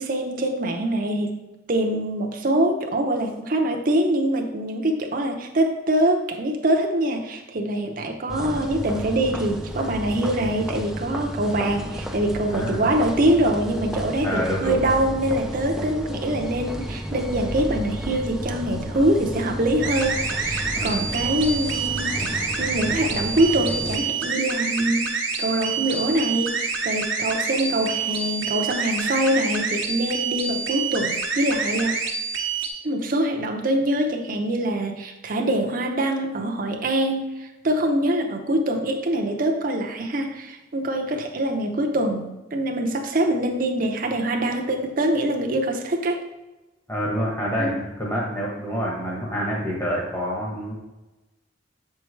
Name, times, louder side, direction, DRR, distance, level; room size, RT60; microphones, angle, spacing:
voice 1, 0.0-1.4 1.7-22.3 22.6-25.1 25.4-32.0 32.8-46.2 47.6-47.8, right 1 dB, 45° right, 2 dB, 0.7 m, -24 dB
sound 1, 8.3-24.0, equal, ahead, 0.4 m, -32 dB
voice 2, 12.5-12.8 14.2-14.8 20.7-21.1 22.2-22.3 46.9-50.7, equal, 15° left, -4 dB, 1.1 m, -27 dB
sound 2, 19.8-32.7, right 5 dB, 85° right, 1.0 m, -27 dB
7.2 x 4.6 x 3.2 m, 1.1 s
head